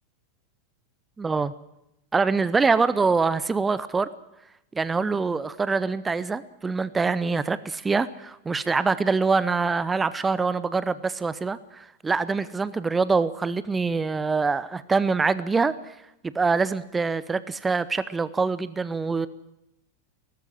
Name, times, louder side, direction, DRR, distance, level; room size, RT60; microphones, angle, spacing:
voice 1, 1.2-1.5 2.1-4.1 4.7-15.8 16.2-19.3, right 4 dB, 15° right, 16 dB, 0.8 m, -24 dB
18.5 x 15.0 x 9.8 m, 0.88 s
figure-of-eight pair, 90°, 0 cm